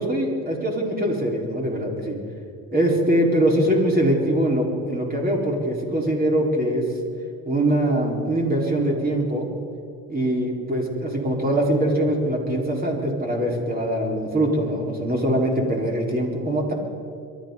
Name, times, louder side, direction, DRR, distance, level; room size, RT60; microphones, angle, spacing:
voice 1, 0.0-2.2 2.7-6.8 7.5-9.5 10.1-16.7, right 1 dB, 25° right, -1 dB, 4.4 m, -22 dB
23.5 x 13.5 x 4.0 m, 2.5 s
supercardioid pair, 85°, 36 cm